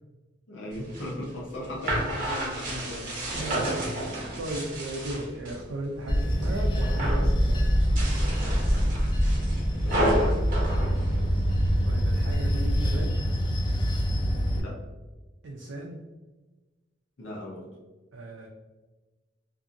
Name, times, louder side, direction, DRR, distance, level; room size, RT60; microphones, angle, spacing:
voice 1, 0.5-3.3 9.8-10.2 10.8-11.0 14.5-14.8 17.2-17.7, left 1 dB, 80° left, -3 dB, 0.7 m, -37 dB
sound 1, 0.7-5.6 6.0-6.5 6.8-7.3 7.8-11.7, right 1 dB, 45° right, 0.9 m, -31 dB
voice 2, 3.3-3.7 4.1-8.1 11.8-13.1 15.4-16.0 18.1-18.5, right 1 dB, 85° right, 0 dB, 0.4 m, -36 dB
Bell / Train, 6.1-14.6, equal, 25° left, 0.3 m, -25 dB
2.6 x 2.5 x 2.5 m, 1.2 s
head